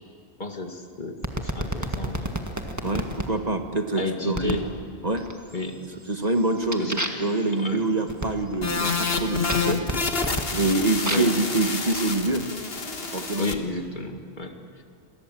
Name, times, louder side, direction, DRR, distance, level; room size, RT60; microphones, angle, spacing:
voice 1, 0.4-1.2 1.4-2.3 4.0-4.6 5.5-5.8 6.8-6.9 7.6-7.8 11.1-11.3 13.4-14.5, left 2 dB, 45° left, 4 dB, 2.1 m, -31 dB
sound 1, 1.2-3.3 4.3-4.7 5.2-5.6 6.0-11.4 12.2-13.4, right 1 dB, 15° right, 1.7 m, -33 dB
voice 2, 2.8-4.7 5.0-5.3 6.1-9.8 10.5-12.5 13.1-13.5, right 2 dB, 40° right, 6 dB, 1.6 m, -25 dB
sound 2, 8.6-13.5, left 4 dB, 65° left, 1.8 m, -28 dB
29.0 x 23.0 x 7.6 m, 2.2 s
omnidirectional pair, 1.1 m